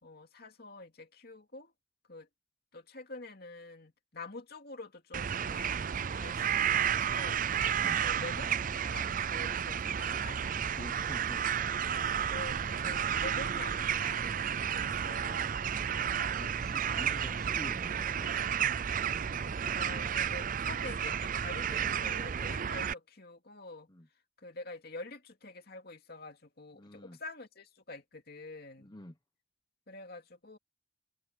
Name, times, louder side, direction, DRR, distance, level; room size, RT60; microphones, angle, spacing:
voice 1, 0.0-1.7 2.1-2.3 2.7-5.7 6.2-7.4 8.0-10.4 12.3-15.6 19.8-23.9 24.4-28.9 29.9-30.6, left 3 dB, 55° left, 2.6 m, -47 dB
sound 1, 5.1-22.9, right 8 dB, 45° right, 0.5 m, -32 dB
voice 2, 10.8-11.5 16.2-18.3 23.9-24.1 26.7-27.2 28.8-29.2, left 1 dB, 20° left, 1.0 m, -47 dB
head